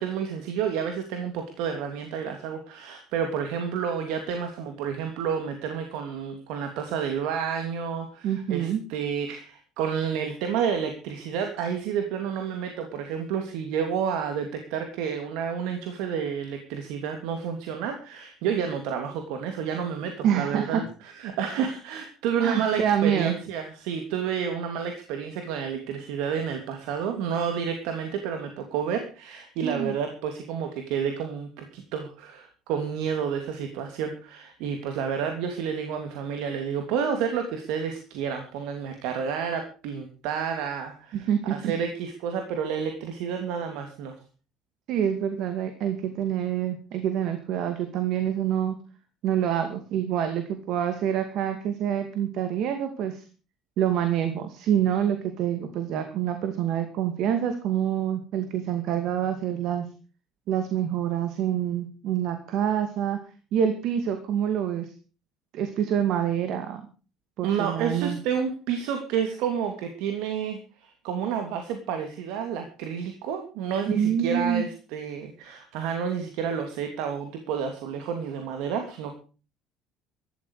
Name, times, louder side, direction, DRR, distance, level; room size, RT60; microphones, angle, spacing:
voice 1, 0.0-44.1 67.4-79.1, right 7 dB, 80° right, 5 dB, 3.1 m, -30 dB
voice 2, 8.2-8.8 20.2-20.8 22.4-23.3 29.6-29.9 41.1-41.7 44.9-48.8 49.2-53.2 53.8-59.9 60.5-63.2 63.5-64.9 65.5-66.8 67.4-68.2 73.9-74.6, right 9 dB, 50° right, 8 dB, 2.3 m, -26 dB
15.5 x 13.5 x 4.9 m, 0.36 s
cardioid pair, 180°, 0 cm